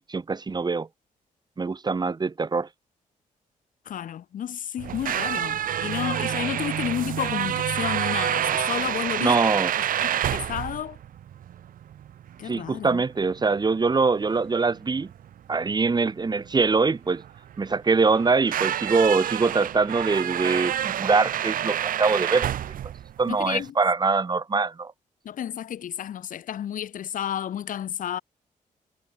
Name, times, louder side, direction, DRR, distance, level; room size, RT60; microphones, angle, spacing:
voice 1, 0.1-0.9 1.6-2.7 9.2-9.7 12.4-15.1 15.5-17.2 17.6-22.5 23.2-24.9, right 4 dB, 30° right, 2.8 m, -23 dB
voice 2, 3.9-9.3 10.0-11.0 12.4-13.0 23.3-23.7 25.3-28.2, left 10 dB, 75° left, 1.8 m, -31 dB
sound 1, 4.8-23.7, right 10 dB, 85° right, 5.5 m, -29 dB
cardioid pair, 105°, 14 cm